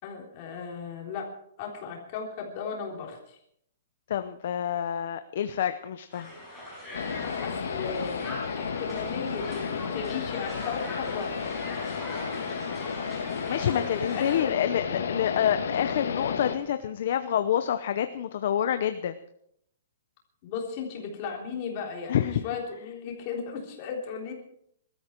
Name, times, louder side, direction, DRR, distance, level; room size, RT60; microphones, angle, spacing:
voice 1, 0.0-1.3 1.6-3.4 7.4-8.2 8.5-11.4 13.7-14.5 20.4-24.3, left 6 dB, 25° left, 0 dB, 3.5 m, -36 dB
voice 2, 4.1-6.3 13.5-19.1 22.1-22.4, left 10 dB, 45° left, 10 dB, 0.7 m, -27 dB
Crowd, 6.1-14.4, left 1 dB, 5° right, 5.4 m, -40 dB
sound 1, 6.9-16.5, left 6 dB, 80° left, 2.1 m, -33 dB
21.0 x 13.5 x 4.5 m, 0.72 s
hypercardioid pair, 180°, 0 cm